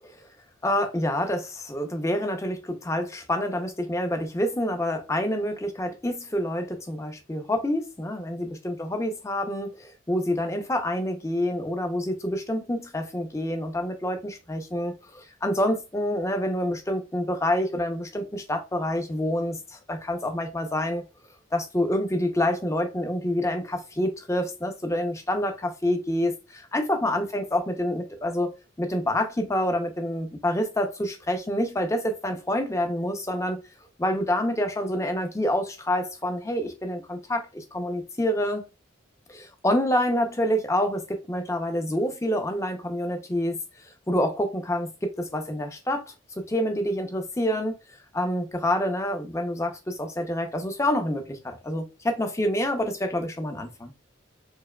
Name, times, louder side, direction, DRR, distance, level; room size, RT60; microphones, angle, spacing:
voice 1, 0.6-21.0 21.5-28.5 28.8-33.6 34.0-38.7 39.3-43.6 44.1-46.0 46.4-47.7 48.1-53.9, left 1 dB, 15° left, 0.5 m, -27 dB
4.7 x 2.7 x 2.2 m
head